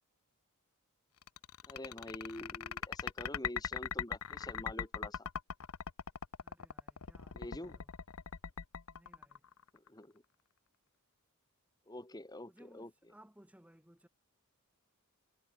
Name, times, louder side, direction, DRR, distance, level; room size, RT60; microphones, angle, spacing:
sound 1, 1.2-9.9, left 7 dB, 80° left, 0.8 m, -40 dB
voice 1, 1.7-5.3 7.3-7.8 9.7-10.2 11.9-13.1, left 1 dB, 15° left, 1.3 m, -47 dB
voice 2, 6.4-7.9 8.9-9.4 12.5-14.1, right 1 dB, 5° right, 1.2 m, -62 dB
head